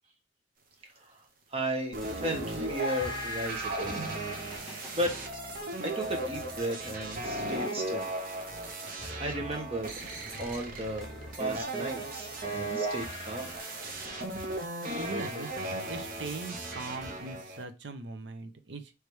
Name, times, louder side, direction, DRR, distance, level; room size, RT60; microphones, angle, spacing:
voice 1, 1.5-4.0 4.9-5.1 5.8-8.1 8.9-9.9 10.4-11.1 11.4-13.5, right 1 dB, 30° right, 2 dB, 1.1 m, -34 dB
sound 1, 1.9-17.3, equal, ahead, 1.1 m, -48 dB
sound 2, 1.9-17.6, right 1 dB, 50° right, 0.9 m, -36 dB
voice 2, 15.0-15.6 15.9-18.9, right 3 dB, 70° right, 8 dB, 0.7 m, -40 dB
3.2 x 3.2 x 4.6 m, 0.27 s
head